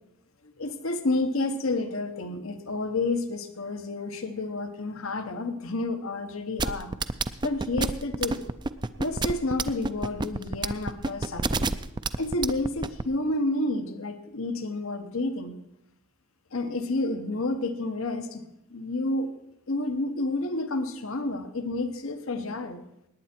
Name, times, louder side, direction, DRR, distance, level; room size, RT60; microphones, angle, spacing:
voice 1, 0.6-6.9 7.4-8.4 9.0-11.7 12.2-15.6 16.5-18.4 18.7-19.3 19.7-22.8, left 2 dB, 80° left, 9 dB, 1.1 m, -30 dB
sound 1, 6.6-13.0, right 3 dB, 20° right, 0.4 m, -27 dB
19.0 x 9.3 x 4.5 m, 0.82 s
head